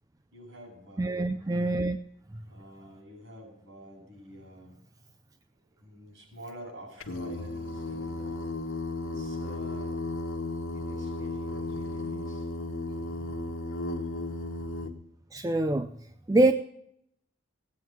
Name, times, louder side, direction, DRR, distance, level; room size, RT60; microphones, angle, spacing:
voice 1, 0.3-1.3 2.4-4.8 5.7-8.4 9.0-9.9 10.6-12.5, equal, 65° right, 2 dB, 7.3 m, -48 dB
voice 2, 1.0-2.0 15.3-15.9 16.3-16.5, right 2 dB, 15° right, 8 dB, 0.4 m, -24 dB
Singing, 7.0-14.9, left 2 dB, 80° left, 1.4 m, -34 dB
17.0 x 9.5 x 4.6 m, 0.72 s
head